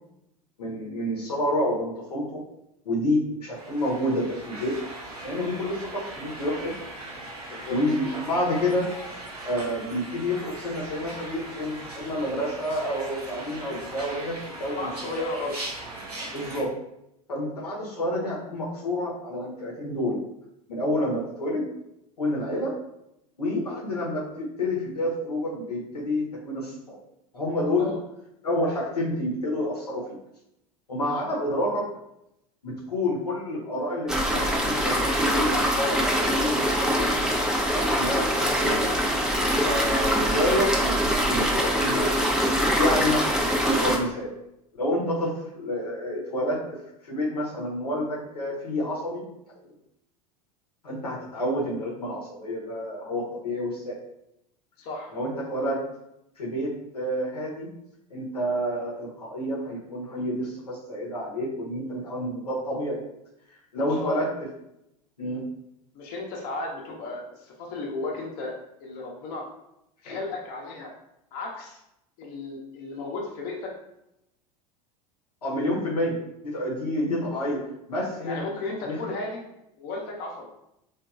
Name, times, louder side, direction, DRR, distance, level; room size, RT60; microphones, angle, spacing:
voice 1, 0.6-2.4 2.8-4.8 5.2-6.7 7.7-8.9 9.4-14.9 16.3-16.7 17.3-20.2 20.7-21.7 22.2-22.7 23.4-27.0 27.3-27.9 28.4-30.2 30.9-31.9 32.6-38.9 39.6-42.1 42.8-44.3 44.8-49.2 50.8-54.0 55.1-55.8 56.4-57.7 58.1-63.0 63.7-64.3 65.2-65.4 70.1-70.2 75.4-76.2 76.4-77.6 77.9-78.4 78.8-79.0, left 1 dB, 90° left, -5 dB, 0.8 m, -29 dB
sound 1, 3.5-16.6, right 2 dB, 90° right, 0.7 m, -39 dB
voice 2, 14.5-15.6 16.4-16.5 27.8-28.0 54.8-55.1 64.0-64.2 65.9-68.5 68.8-69.4 70.0-70.9 71.3-71.8 72.2-73.7 78.2-79.4 79.8-80.5, left 2 dB, 50° left, -2 dB, 0.7 m, -34 dB
sound 2, 34.1-44.0, equal, 5° right, 0.5 m, -24 dB
2.9 x 2.4 x 2.4 m, 0.82 s
hypercardioid pair, 80°, 20 cm